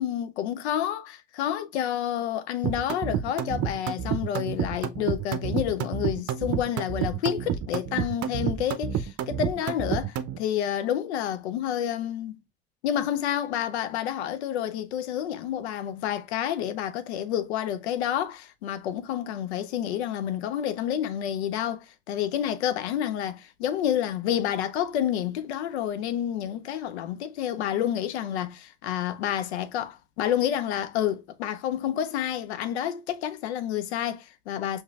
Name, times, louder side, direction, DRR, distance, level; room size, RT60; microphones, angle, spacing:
voice 1, 0.0-12.4 12.8-34.8, left 10 dB, 80° left, 0.6 m, -29 dB
sound 1, 2.6-10.4, right 9 dB, 45° right, 0.6 m, -29 dB
5.6 x 2.9 x 2.3 m
hypercardioid pair, 65°, 32 cm